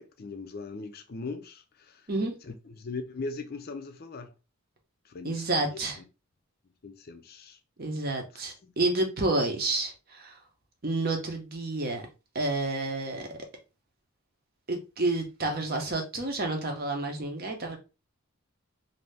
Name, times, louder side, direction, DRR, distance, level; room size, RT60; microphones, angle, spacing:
voice 1, 0.0-2.1 2.4-4.3 5.0-5.8 6.8-7.6 8.3-8.5 9.5-9.6, left 3 dB, 45° left, 0.5 m, -40 dB
voice 2, 5.2-6.0 7.8-10.3 10.8-12.0 12.3-13.3 14.7-17.8, right 2 dB, 40° right, 0.8 m, -29 dB
2.7 x 2.7 x 3.2 m
head